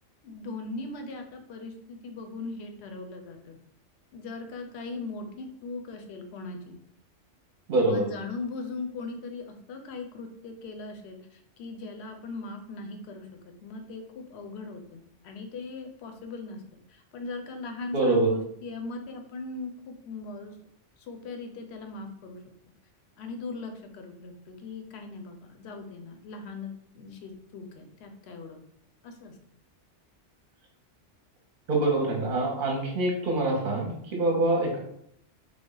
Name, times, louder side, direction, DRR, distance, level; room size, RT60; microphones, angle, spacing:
voice 1, 0.2-3.6 4.1-6.8 7.8-13.3 13.6-16.6 16.9-20.6 21.0-22.4 23.2-28.6 29.0-29.4, left 3 dB, 65° left, 4 dB, 0.8 m, -39 dB
voice 2, 7.7-8.0 17.9-18.3 31.7-34.8, right 2 dB, 55° right, 0 dB, 0.7 m, -25 dB
3.3 x 2.1 x 3.7 m, 0.70 s
omnidirectional pair, 1.2 m